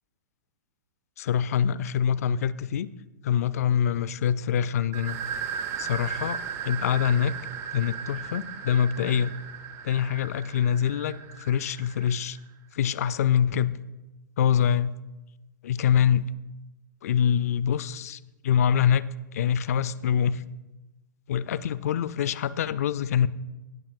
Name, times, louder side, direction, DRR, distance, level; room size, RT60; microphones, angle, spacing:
voice 1, 1.2-2.9 3.2-5.2 5.8-6.4 6.7-7.3 7.7-9.3 9.8-12.4 12.7-13.7 14.4-14.9 15.7-16.3 17.0-18.2 18.4-20.4 21.3-23.3, left 8 dB, 50° left, 17 dB, 0.4 m, -25 dB
sound 1, 4.9-12.4, right 7 dB, 25° right, 0.4 m, -36 dB
18.0 x 7.0 x 2.3 m, 1.1 s
figure-of-eight pair, 110°, 11 cm